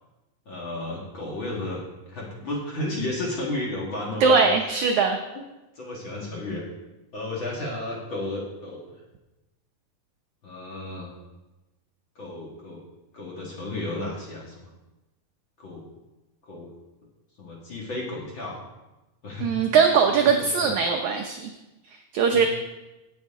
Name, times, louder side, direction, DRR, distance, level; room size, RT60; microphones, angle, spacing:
voice 1, 0.5-1.8 2.1-4.4 5.3-5.4 5.8-6.6 7.1-8.9 10.4-11.1 12.2-12.8 13.1-14.7 15.6-15.9 16.5-16.7 17.4-18.6 19.2-19.8 20.0-20.7 22.3-22.5, left 2 dB, 40° left, -4 dB, 2.1 m, -33 dB
voice 2, 4.2-5.2 19.4-21.5 22.1-22.5, right 5 dB, 80° right, 4 dB, 1.7 m, -20 dB
17.5 x 7.1 x 3.7 m, 1.0 s
omnidirectional pair, 4.3 m